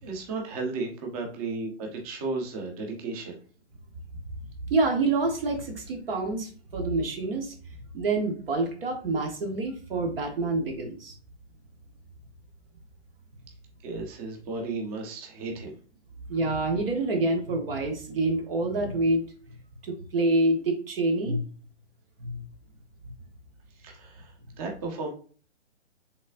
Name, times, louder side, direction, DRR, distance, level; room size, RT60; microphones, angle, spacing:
voice 1, 0.0-3.4 13.8-15.8 23.8-25.1, right 3 dB, 30° right, 1 dB, 1.2 m, -34 dB
voice 2, 4.7-11.2 16.3-19.2 19.5-19.6 19.8-21.4 22.2-22.4, right 2 dB, 55° right, 3 dB, 1.2 m, -27 dB
5.3 x 3.7 x 2.5 m, 0.41 s
hypercardioid pair, 140°, 35 cm